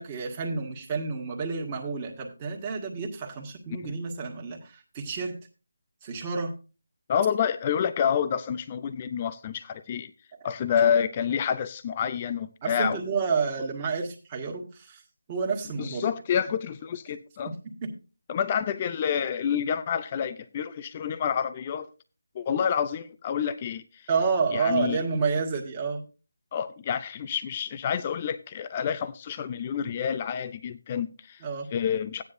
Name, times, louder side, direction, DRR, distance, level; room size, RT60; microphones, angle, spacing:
voice 1, 0.0-5.3 6.0-6.5 12.6-15.0 15.3-16.1 17.8-17.9 24.1-26.0 31.4-31.7, right 5 dB, 20° right, 0 dB, 1.7 m, -29 dB
voice 2, 7.1-10.1 10.4-13.0 15.8-17.5 18.3-21.9 22.3-23.8 24.5-25.0 26.5-31.4 31.7-32.2, left 8 dB, 25° left, 12 dB, 0.5 m, -28 dB
14.5 x 9.5 x 2.6 m, 0.33 s
figure-of-eight pair, 160°, 0 cm